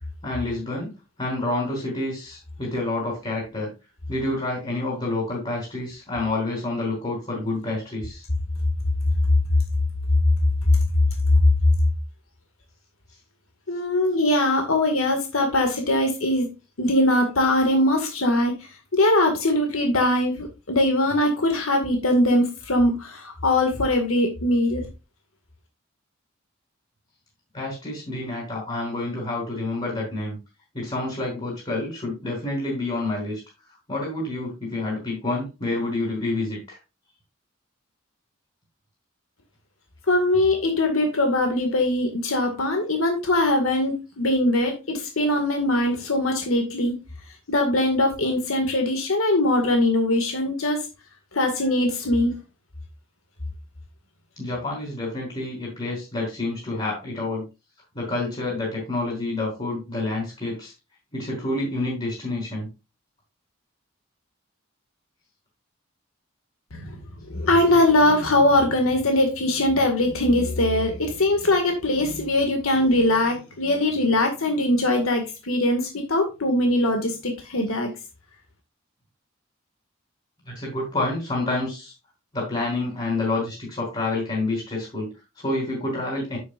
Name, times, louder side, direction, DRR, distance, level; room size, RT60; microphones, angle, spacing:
voice 1, 0.2-0.9 1.2-3.7 4.1-8.3 27.5-30.4 30.7-33.4 33.9-36.8 54.4-57.5 57.9-60.7 61.1-62.7 80.5-81.9 82.3-86.4, left 2 dB, 25° left, -3 dB, 4.3 m, -28 dB
voice 2, 13.7-16.5 16.8-18.5 18.9-24.8 40.1-47.0 47.5-50.9 51.3-52.4 66.7-67.0 67.3-77.9, left 1 dB, 85° left, 4 dB, 2.1 m, -21 dB
9.7 x 8.5 x 2.5 m, 0.28 s
head